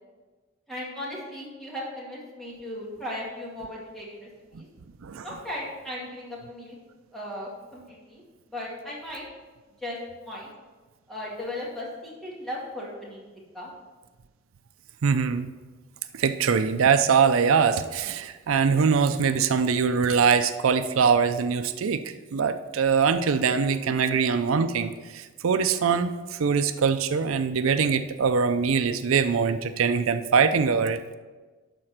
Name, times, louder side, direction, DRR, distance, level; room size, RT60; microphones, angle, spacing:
voice 1, 0.7-4.3 4.6-4.7 5.2-6.8 7.1-8.2 8.5-9.2 9.8-10.5 11.1-13.2 13.5-13.7, left 1 dB, ahead, -6 dB, 2.1 m, -36 dB
voice 2, 15.0-15.5 16.1-31.0, right 6 dB, 90° right, 10 dB, 0.5 m, -23 dB
11.5 x 4.3 x 5.9 m, 1.3 s
head